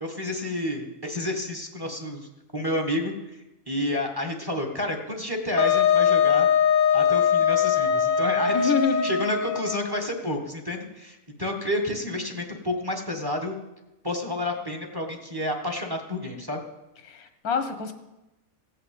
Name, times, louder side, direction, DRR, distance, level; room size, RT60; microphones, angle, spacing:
voice 1, 0.0-3.1 3.7-6.5 6.9-8.7 9.0-13.5 14.0-16.6, left 1 dB, 15° right, 3 dB, 1.4 m, -30 dB
Wind instrument woodwind instrument, 5.6-9.9, left 7 dB, 35° left, 1.0 m, -21 dB
voice 2, 8.5-9.1 17.1-17.9, left 6 dB, 90° left, 8 dB, 1.7 m, -26 dB
15.5 x 5.7 x 8.7 m, 0.99 s
omnidirectional pair, 1.5 m